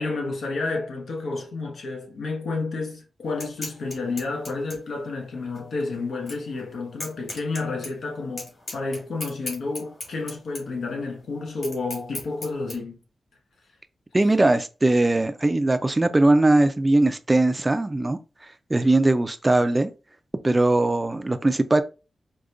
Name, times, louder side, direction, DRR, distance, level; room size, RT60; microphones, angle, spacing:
voice 1, 0.0-13.0, left 3 dB, 85° left, 0.9 m, -30 dB
sound 1, 3.2-12.7, left 1 dB, 50° left, 2.0 m, -40 dB
voice 2, 14.1-18.2 18.7-19.9 20.4-21.8, right 2 dB, 20° right, 0.3 m, -20 dB
4.8 x 2.2 x 2.5 m
wide cardioid pair, 115°, 0 cm